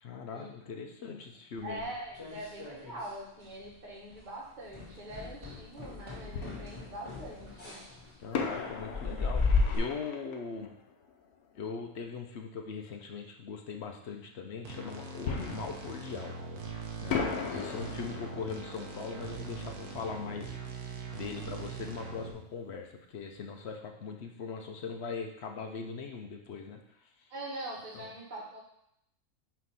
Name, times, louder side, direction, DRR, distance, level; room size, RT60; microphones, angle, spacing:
voice 1, 0.0-1.9 8.2-10.7 11.5-16.4 17.0-17.2 17.5-20.6 21.1-27.3 27.9-28.1, left 5 dB, 55° left, 3 dB, 0.8 m, -40 dB
voice 2, 0.9-1.2 1.6-7.8 17.4-17.8 27.3-28.6, right 1 dB, 35° right, -4 dB, 1.3 m, -43 dB
sound 1, 1.7-3.2 3.4-3.8 4.1-4.3 4.7-9.8, left 4 dB, 20° left, 1.9 m, -34 dB
Fireworks, 5.0-5.1 6.3-7.4 8.3-11.8 15.2-16.7 17.1-21.6 21.9-22.0 22.5-22.7, left 5 dB, 85° left, 1.2 m, -39 dB
sound 2, 14.6-22.3, right 4 dB, 80° right, 1.4 m, -42 dB
5.9 x 3.1 x 5.6 m, 0.76 s
omnidirectional pair, 1.6 m